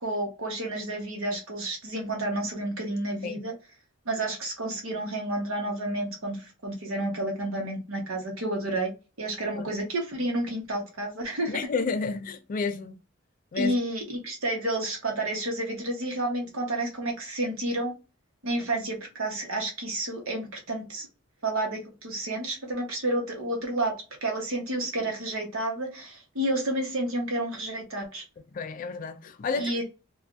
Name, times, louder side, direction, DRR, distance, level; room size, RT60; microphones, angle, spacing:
voice 1, 0.0-3.5 4.0-8.9 9.2-11.6 13.5-17.9 18.4-21.1 21.4-23.9 24.2-28.2 29.5-29.8, right 1 dB, 80° right, 1.0 m, -30 dB
voice 2, 11.5-12.9 13.5-13.7 28.5-29.8, left 4 dB, 40° left, 0.3 m, -30 dB
3.3 x 2.3 x 2.5 m
head